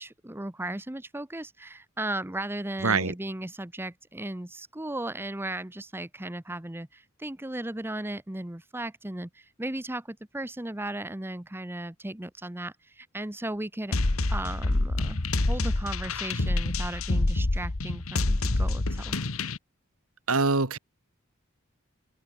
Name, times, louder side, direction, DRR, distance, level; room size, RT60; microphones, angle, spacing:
voice 1, 0.0-13.9 14.3-19.2, right 1 dB, 10° right, 0.9 m, -36 dB
voice 2, 2.8-3.1 20.3-20.8, right 4 dB, 90° right, 2.1 m, -24 dB
sound 1, 13.9-19.6, left 2 dB, 80° left, 1.6 m, -27 dB
open air
head